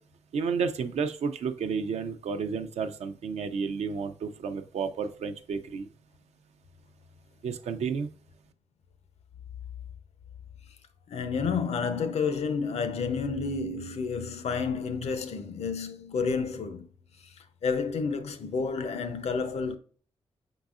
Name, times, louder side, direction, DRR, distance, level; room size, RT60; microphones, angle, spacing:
voice 1, 0.3-5.9 7.4-8.1, right 5 dB, 80° right, 0.5 m, -31 dB
voice 2, 11.1-16.9 17.6-19.8, left 5 dB, 70° left, 0.6 m, -30 dB
5.4 x 3.9 x 2.4 m
cardioid pair, 70°, 11 cm